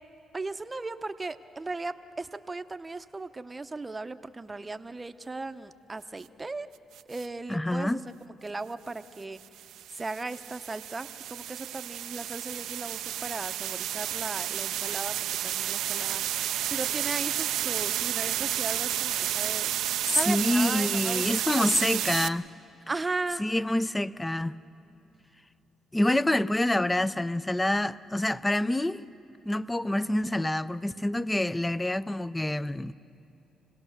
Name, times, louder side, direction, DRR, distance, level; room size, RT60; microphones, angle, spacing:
voice 1, 0.3-6.7 7.1-8.0 8.4-9.4 9.9-15.2 15.4-16.2 16.7-19.8 20.2-21.6 22.9-23.4, right 3 dB, 20° right, 0.7 m, -37 dB
sound 1, 6.9-7.3 9.4-22.3, right 12 dB, 85° right, 0.4 m, -31 dB
voice 2, 7.5-8.0 20.0-22.5 23.4-24.6 25.9-29.0 29.5-32.9, left 1 dB, 10° left, 0.4 m, -27 dB
27.0 x 17.5 x 6.5 m
cardioid pair, 90°, 0 cm